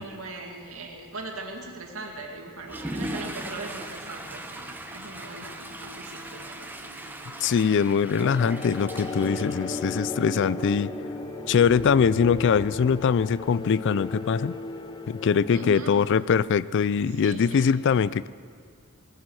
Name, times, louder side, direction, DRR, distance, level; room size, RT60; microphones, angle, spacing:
voice 1, 0.0-6.7 15.5-15.9 17.2-17.7, right 2 dB, 75° right, 1 dB, 2.3 m, -39 dB
sound 1, 2.3-15.8, equal, 50° right, 3.8 m, -46 dB
Water / Toilet flush, 2.6-10.4, right 1 dB, 10° right, 0.9 m, -39 dB
voice 2, 7.4-10.9 11.5-14.5 15.1-18.3, left 6 dB, 55° left, 19 dB, 0.3 m, -22 dB
sound 2, 8.2-15.8, left 2 dB, 20° left, 0.7 m, -35 dB
20.0 x 14.5 x 4.8 m, 2.1 s
head